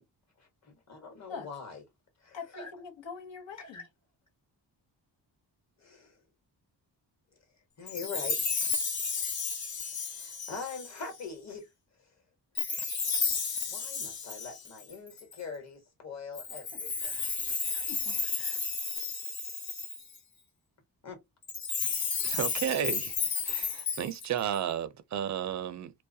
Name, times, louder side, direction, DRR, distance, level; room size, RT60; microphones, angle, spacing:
voice 1, 0.4-1.8 2.2-2.7 3.6-3.9 5.8-6.2 7.8-8.4 10.1-11.7 12.0-12.1 13.7-17.1 21.0-21.2, left 4 dB, 40° left, 1.2 m, -43 dB
voice 2, 2.3-3.8 16.7-17.3 17.7-18.7, left 5 dB, 85° left, 0.9 m, -45 dB
Chime, 7.9-11.2 12.6-15.4 16.3-20.2 21.4-24.6, left 5 dB, 55° left, 0.9 m, -33 dB
voice 3, 22.2-23.2 23.4-25.9, right 9 dB, 45° right, 0.4 m, -33 dB
2.3 x 2.1 x 2.6 m
cardioid pair, 80°, 43 cm